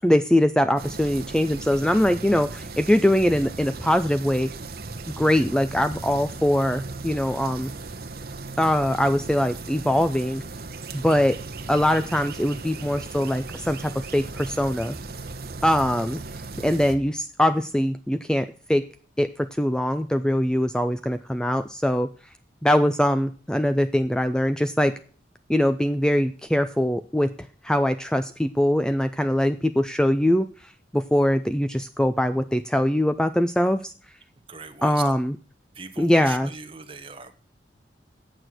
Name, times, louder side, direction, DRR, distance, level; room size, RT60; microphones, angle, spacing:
voice 1, 0.0-4.5 5.2-7.7 8.6-10.4 10.9-11.4 11.7-15.0 15.6-16.2 16.6-18.8 19.2-22.1 22.6-24.9 25.5-27.3 27.6-33.9 34.8-35.4 36.0-36.5, equal, 5° left, 11 dB, 0.4 m, -22 dB
sound 1, 0.8-17.0, right 3 dB, 55° right, 1.0 m, -37 dB
voice 2, 34.5-35.1 35.7-37.3, right 4 dB, 30° right, 9 dB, 1.1 m, -39 dB
9.0 x 7.8 x 6.1 m, 0.42 s
head